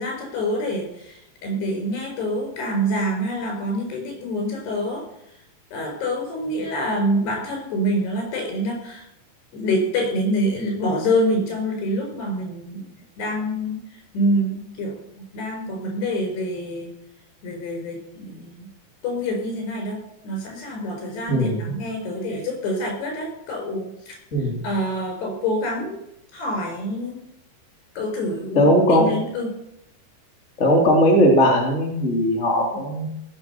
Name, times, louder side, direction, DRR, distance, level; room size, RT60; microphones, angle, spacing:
voice 1, 0.0-5.0 5.7-9.1 9.5-12.9 13.2-13.8 14.1-16.9 17.4-18.7 19.0-24.1 24.6-26.0 26.3-27.2 28.0-29.5, equal, 60° left, 1 dB, 6.6 m, -26 dB
voice 2, 21.3-21.7 24.3-24.6 28.5-29.1 30.6-33.1, equal, 20° left, -1 dB, 2.2 m, -18 dB
19.0 x 7.4 x 6.8 m, 0.79 s
omnidirectional pair, 5.4 m